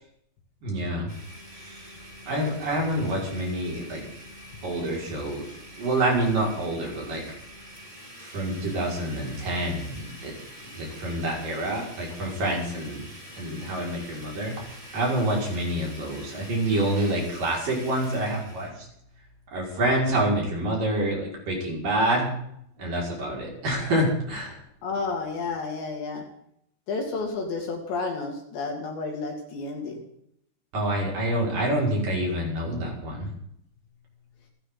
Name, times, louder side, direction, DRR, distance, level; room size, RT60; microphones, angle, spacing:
voice 1, 0.6-1.1 1.6-2.0 2.3-4.0 4.6-7.2 8.2-10.3 10.7-13.0 13.4-18.9 19.5-22.3 22.8-24.6 30.7-33.3, right 1 dB, 45° right, -2 dB, 7.0 m, -27 dB
Domestic sounds home sounds, 1.1-18.7, equal, 10° right, 3.5 m, -45 dB
voice 2, 24.8-26.2 26.9-30.0, left 3 dB, 65° left, 1 dB, 4.8 m, -31 dB
29.0 x 12.0 x 4.0 m, 0.70 s
omnidirectional pair, 5.6 m